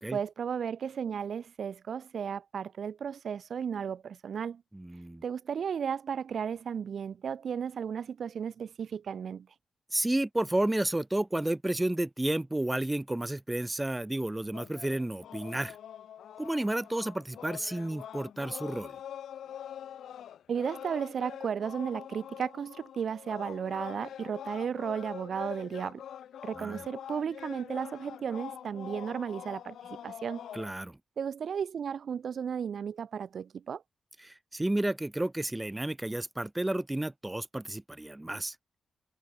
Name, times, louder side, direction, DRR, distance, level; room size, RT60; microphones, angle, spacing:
voice 1, 0.1-4.6 5.2-9.5 20.5-26.0 26.4-29.8 30.0-30.4 31.2-33.8, right 7 dB, 60° right, 0.8 m, -34 dB
voice 2, 4.7-5.2 9.9-15.8 16.4-19.0 26.5-26.8 30.5-31.0 34.2-38.5, right 1 dB, 10° right, 0.9 m, -31 dB
sound 1, 14.5-30.8, left 10 dB, 90° left, 4.4 m, -45 dB
cardioid pair, 115°, 0 cm